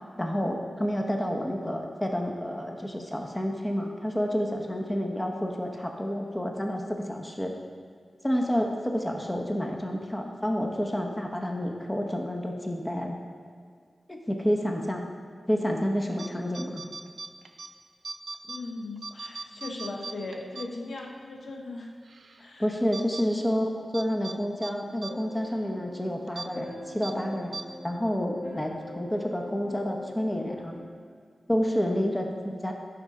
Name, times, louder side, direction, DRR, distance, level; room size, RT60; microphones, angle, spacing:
voice 1, 0.2-7.6 8.2-13.2 14.1-15.0 15.5-16.8 22.6-27.6 27.8-30.8 31.5-32.7, equal, 15° left, 2 dB, 0.8 m, -29 dB
sound 1, 16.1-16.3 16.5-17.7 18.0-18.6 19.0-21.1 21.5-21.6 22.0-22.4 22.9-23.2 23.9-24.4 24.6-24.7 25.0-25.1 25.4-25.6 26.3-26.5 27.0-27.1 27.5-27.6, right 4 dB, 75° right, 0.5 m, -39 dB
voice 2, 18.4-22.0 22.4-22.7 23.2-23.5, left 2 dB, 75° left, 1 dB, 0.7 m, -38 dB
sound 2, 25.1-30.9, left 1 dB, 60° left, 1.5 m, -43 dB
10.5 x 4.3 x 3.7 m, 2.1 s
cardioid pair, 65°, 0 cm